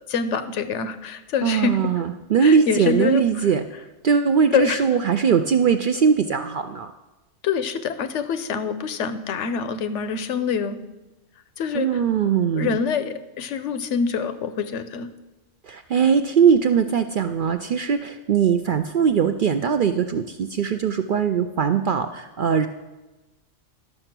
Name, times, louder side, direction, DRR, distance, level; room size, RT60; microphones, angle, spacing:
voice 1, 0.0-1.9 2.4-3.5 4.5-4.8 7.4-10.8 11.6-12.0 12.5-15.1, left 6 dB, 75° left, 11 dB, 1.0 m, -25 dB
voice 2, 1.4-3.6 4.0-6.9 11.7-12.7 15.7-22.7, right 7 dB, 60° right, 8 dB, 0.5 m, -20 dB
11.5 x 6.7 x 5.9 m, 1.1 s
omnidirectional pair, 1.3 m